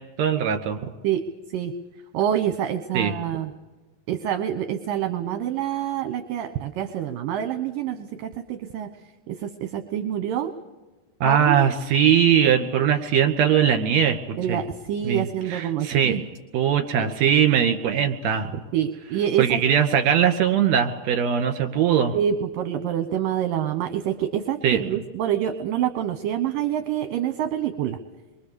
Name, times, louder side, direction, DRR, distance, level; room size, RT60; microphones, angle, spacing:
voice 1, 0.2-0.8 2.9-3.1 11.2-14.6 15.0-16.2 16.5-18.5 19.4-22.1 24.6-24.8, right 8 dB, 50° right, 6 dB, 3.0 m, -20 dB
voice 2, 2.1-3.5 4.1-8.9 9.3-10.5 11.3-11.6 14.4-16.2 17.0-17.1 18.7-19.6 22.1-28.0, right 10 dB, 70° right, 8 dB, 2.6 m, -26 dB
29.5 x 23.5 x 6.9 m, 1.2 s
omnidirectional pair, 4.5 m